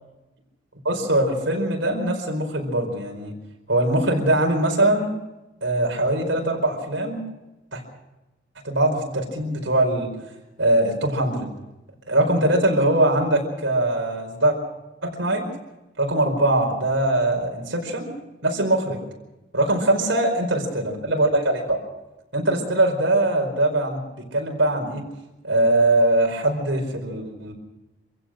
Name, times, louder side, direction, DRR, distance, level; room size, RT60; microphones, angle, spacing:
voice 1, 0.8-3.3 3.7-5.1 5.6-7.2 7.7-7.8 8.6-10.1 10.6-11.5 12.1-14.6 15.0-15.4 16.0-18.1 18.4-19.0 19.5-21.8 22.3-25.0 25.4-27.5, right 1 dB, 70° right, 1 dB, 4.8 m, -22 dB
26.0 x 16.0 x 6.4 m, 0.99 s
head